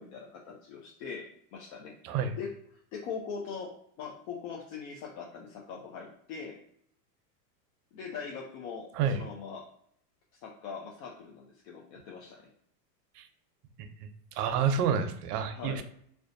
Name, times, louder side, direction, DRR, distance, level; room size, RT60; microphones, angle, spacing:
voice 1, 0.0-2.5 2.9-6.6 7.9-9.7 10.3-12.5 15.5-15.8, left 6 dB, 55° left, -2 dB, 0.6 m, -41 dB
voice 2, 14.3-15.8, right 7 dB, 70° right, 9 dB, 0.6 m, -29 dB
2.4 x 2.1 x 2.5 m, 0.68 s
supercardioid pair, 130°, 50 cm